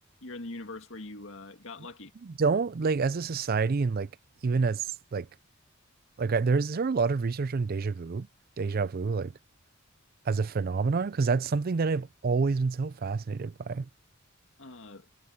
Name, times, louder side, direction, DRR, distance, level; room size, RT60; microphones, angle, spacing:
voice 1, 0.2-2.1 14.6-15.1, left 2 dB, 65° left, 2.1 m, -42 dB
voice 2, 2.2-4.1 4.4-5.3 6.2-8.3 8.6-9.3 10.3-13.9, right 4 dB, 45° right, 0.4 m, -28 dB
head